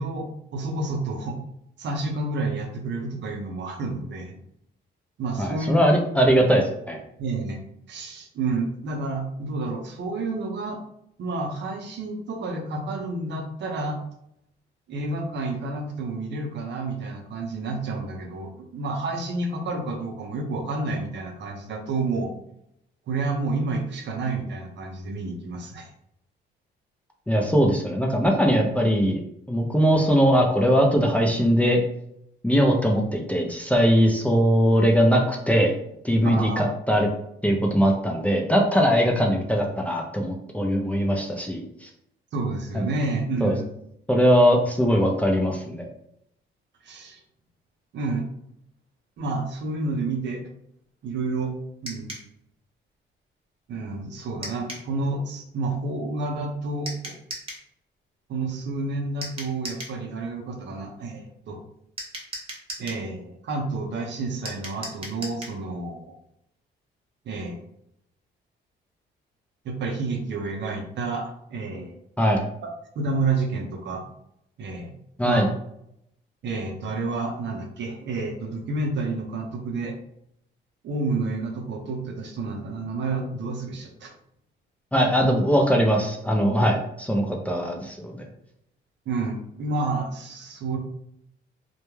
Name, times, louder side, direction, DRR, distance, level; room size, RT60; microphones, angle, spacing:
voice 1, 0.0-1.4 1.8-4.4 5.2-5.8 7.2-7.6 7.9-10.8 11.2-14.0 14.9-22.3 23.1-25.9 36.2-36.6 42.3-43.6 46.8-47.2 47.9-48.3 49.2-50.4 51.0-51.5 51.8-52.2 53.7-57.1 58.3-61.6 62.8-66.1 67.3-67.6 69.6-71.9 73.0-74.0 74.6-74.9 75.2-75.4 76.4-80.0 80.8-84.1 89.1-90.8, right 3 dB, 65° right, 2 dB, 0.6 m, -29 dB
voice 2, 5.4-7.0 27.3-29.2 29.5-31.8 32.4-35.8 36.0-37.1 37.4-41.9 42.7-42.9 43.4-43.5 44.1-45.9 72.2-72.4 75.2-75.5 84.9-88.2, equal, 5° left, 0 dB, 0.4 m, -21 dB
sound 1, 51.9-52.3 54.4-54.9 56.9-57.7 59.2-60.0 62.0-63.0 64.5-65.6, right 1 dB, 30° right, 0.8 m, -37 dB
2.2 x 2.1 x 3.1 m, 0.76 s
cardioid pair, 90°, 20 cm